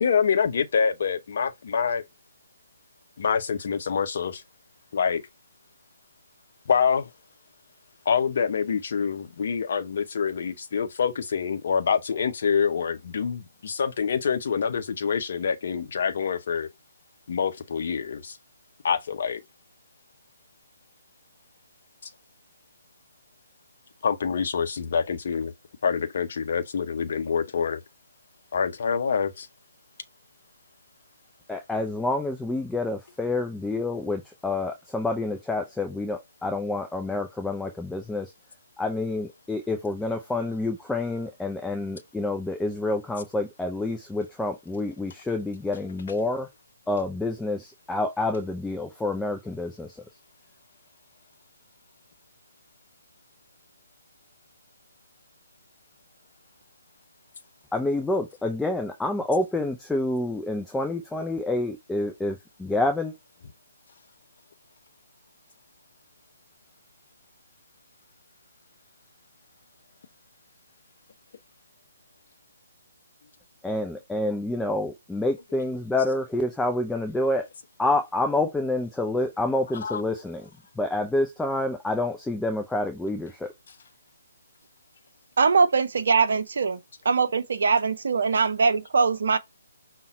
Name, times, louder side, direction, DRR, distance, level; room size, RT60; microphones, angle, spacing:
voice 1, 0.0-2.0 3.2-4.4 4.9-5.2 6.7-7.1 8.1-16.7 17.3-18.4 18.8-19.4 24.0-25.5 25.8-27.8 28.5-29.5 79.8-80.0, left 6 dB, 45° left, 0.6 m, -26 dB
voice 2, 31.5-38.3 38.8-46.5 46.9-50.0 57.7-63.1 73.6-77.5 77.8-80.5 80.8-83.5, left 2 dB, 5° left, 0.4 m, -28 dB
voice 3, 85.4-86.8 87.0-89.4, right 5 dB, 55° right, 0.7 m, -22 dB
5.5 x 2.2 x 4.0 m
figure-of-eight pair, 140°, 0 cm